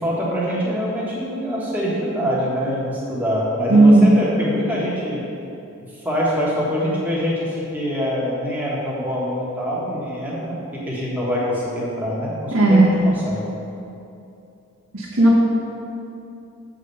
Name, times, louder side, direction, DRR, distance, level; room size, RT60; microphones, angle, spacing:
voice 1, 0.0-5.2 6.0-10.5 10.8-13.5, equal, 10° right, -7 dB, 1.5 m, -24 dB
voice 2, 3.7-4.1 12.5-13.0 14.9-15.4, right 2 dB, 80° right, -7 dB, 1.3 m, -13 dB
7.7 x 5.1 x 5.5 m, 2.7 s
head